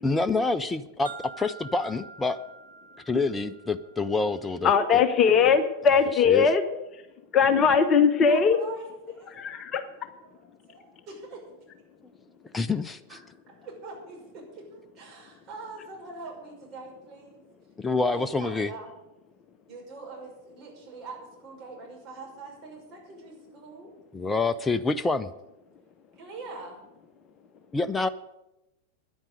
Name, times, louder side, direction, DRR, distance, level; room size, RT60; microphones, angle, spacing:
voice 1, 0.0-2.4 3.1-4.7 6.3-6.5 12.5-13.0 17.8-18.7 24.1-25.3 27.7-28.1, left 3 dB, 10° left, 13 dB, 0.5 m, -27 dB
sound 1, 1.1-5.0, right 4 dB, 80° right, 1.7 m, -47 dB
voice 2, 4.6-6.6 7.3-8.6 9.4-9.9, left 6 dB, 30° left, 9 dB, 0.9 m, -20 dB
voice 3, 8.3-9.5 10.0-11.4 13.1-13.2 13.5-17.4 18.0-18.9 19.7-23.9 26.1-26.8, right 3 dB, 35° right, -2 dB, 5.9 m, -43 dB
10.5 x 8.8 x 9.7 m, 0.93 s
figure-of-eight pair, 90°, 0 cm